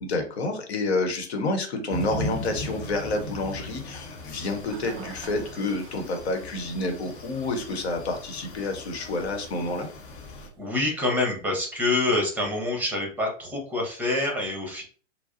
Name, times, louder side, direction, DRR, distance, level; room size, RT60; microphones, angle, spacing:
voice 1, 0.0-9.9, left 2 dB, 60° left, 5 dB, 1.0 m, -29 dB
sound 1, 1.9-10.5, left 1 dB, 40° left, 1.0 m, -38 dB
Toilet flush, 1.9-11.1, right 3 dB, 25° right, 0.4 m, -49 dB
voice 2, 10.6-14.8, left 2 dB, 5° right, 1 dB, 1.0 m, -26 dB
4.6 x 2.0 x 2.7 m, 0.41 s
figure-of-eight pair, 105°, 37 cm